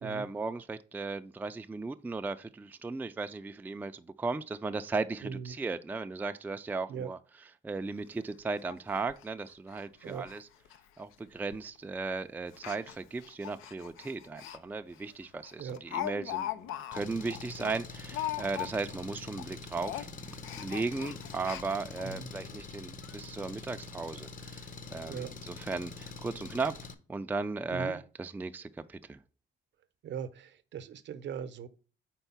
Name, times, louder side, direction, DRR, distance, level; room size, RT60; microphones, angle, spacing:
voice 1, 0.0-7.2 7.6-10.5 11.0-26.7 27.1-29.2, right 3 dB, 10° right, 0.3 m, -36 dB
voice 2, 5.2-5.5 6.9-7.1 10.0-10.3 15.6-15.8 22.0-22.3 25.1-25.3 27.7-28.0 30.0-31.7, right 7 dB, 65° right, 0.7 m, -39 dB
Speech, 7.8-7.9 8.2-8.3 8.7-8.8 9.1-9.2 9.7-9.8 10.1-10.4 10.6-10.8 11.5-11.8 12.5-14.6 15.0-15.1 15.4-19.0 19.3-19.5 19.8-22.1 22.6-22.7 23.0-23.1, left 12 dB, 90° left, 0.5 m, -40 dB
Engine, 16.9-26.9, left 4 dB, 40° left, 0.8 m, -45 dB
4.5 x 3.9 x 5.6 m
cardioid pair, 90°, 20 cm